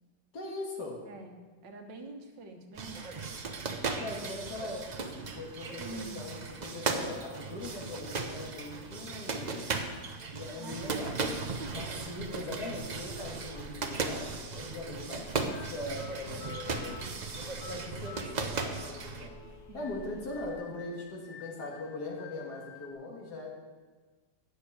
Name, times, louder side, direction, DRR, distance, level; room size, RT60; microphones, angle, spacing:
voice 1, 0.3-1.1 4.0-9.8 10.3-11.2 11.7-17.0 17.6-23.6, left 2 dB, 65° left, 0 dB, 2.3 m, -41 dB
voice 2, 1.1-3.3 5.8-6.2 10.6-11.8 16.3-17.1 19.7-19.9, right 3 dB, 80° right, 3 dB, 1.8 m, -46 dB
Workout gym training boxing, 2.8-19.3, right 4 dB, 65° right, 0.4 m, -37 dB
Telephone, 11.6-20.6, left 1 dB, 10° left, 0.8 m, -52 dB
Fairy creepy sound, 15.4-22.9, left 7 dB, 85° left, 1.7 m, -51 dB
8.3 x 6.5 x 8.3 m, 1.4 s
omnidirectional pair, 1.9 m